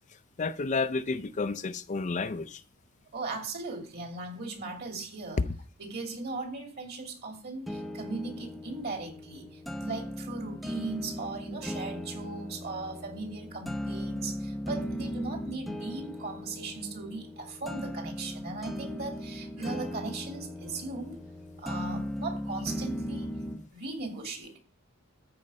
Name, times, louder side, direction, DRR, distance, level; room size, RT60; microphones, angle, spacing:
voice 1, 0.1-2.6 5.4-5.5, left 4 dB, 35° left, 0.5 m, -31 dB
voice 2, 3.1-5.4 5.8-21.1 21.6-23.3 23.7-24.6, right 3 dB, 50° right, 2.8 m, -38 dB
sound 1, 7.7-23.7, equal, ahead, 0.7 m, -38 dB
14.0 x 5.2 x 5.4 m
head